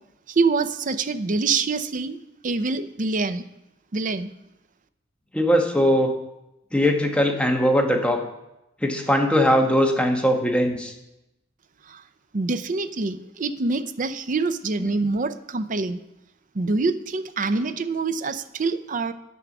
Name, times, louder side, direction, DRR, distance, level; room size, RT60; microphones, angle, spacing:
voice 1, 0.3-2.2 2.4-3.4 3.9-4.3 11.8-12.0 12.3-16.0 16.5-19.1, right 3 dB, 40° right, 12 dB, 0.6 m, -25 dB
voice 2, 5.3-6.1 6.7-8.2 8.8-10.9, equal, 5° left, 2 dB, 1.1 m, -20 dB
8.6 x 6.9 x 6.0 m, 0.89 s
head